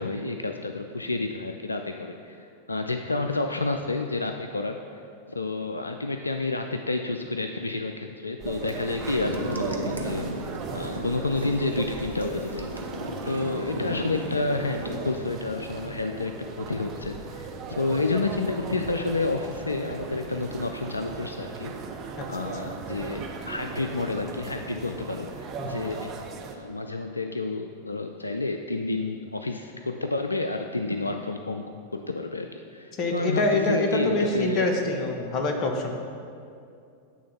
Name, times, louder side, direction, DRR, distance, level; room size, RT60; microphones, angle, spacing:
voice 1, 0.0-5.0 5.3-10.5 10.7-12.7 13.3-21.8 22.3-31.6 31.9-34.7, left 3 dB, 80° left, 5 dB, 0.3 m, -30 dB
sound 1, 8.4-26.6, right 5 dB, 35° right, 0.7 m, -38 dB
sound 2, 8.7-15.0, right 1 dB, 90° right, 0.6 m, -35 dB
voice 2, 33.0-35.9, left 2 dB, 35° left, 3 dB, 0.9 m, -25 dB
8.5 x 3.7 x 5.7 m, 2.5 s
figure-of-eight pair, 90°, 0 cm